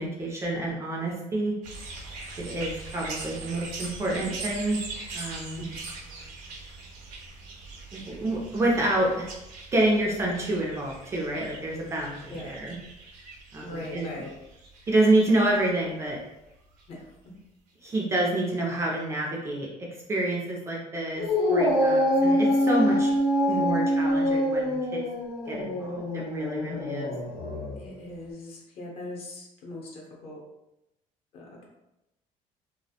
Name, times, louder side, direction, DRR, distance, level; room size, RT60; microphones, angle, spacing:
voice 1, 0.0-1.5 2.4-4.8 5.1-5.6 7.9-9.3 9.7-12.7 13.5-14.1 14.9-16.2 17.8-21.2 21.5-23.1 23.5-25.0 25.5-27.1, right 1 dB, 20° right, -3 dB, 0.3 m, -28 dB
sound 1, 1.6-16.1 16.8-16.9, right 3 dB, 85° right, 0.6 m, -42 dB
voice 2, 13.6-14.4 16.9-17.3 23.4-23.9 27.7-30.4 31.3-31.7, left 1 dB, 45° left, -2 dB, 0.7 m, -40 dB
Dog, 21.2-27.8, equal, 80° left, 0.7 m, -25 dB
2.4 x 2.0 x 2.7 m, 0.91 s
cardioid pair, 165°, 14 cm